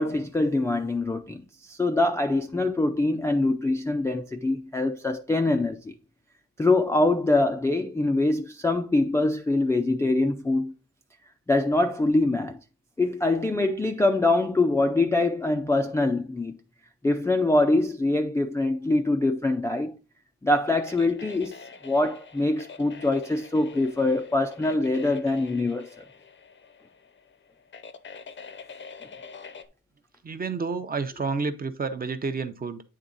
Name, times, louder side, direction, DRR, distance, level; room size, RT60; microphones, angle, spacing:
voice 1, 0.0-1.4 1.7-5.9 6.6-10.7 11.5-12.6 13.0-16.6 17.0-19.9 20.4-21.6 21.8-25.9, left 2 dB, 10° left, 0.3 m, -24 dB
sound 1, 20.6-29.7, left 5 dB, 35° left, 0.6 m, -46 dB
voice 2, 30.2-32.8, right 4 dB, 25° right, 0.6 m, -30 dB
8.7 x 3.5 x 3.9 m
cardioid pair, 135°, 34 cm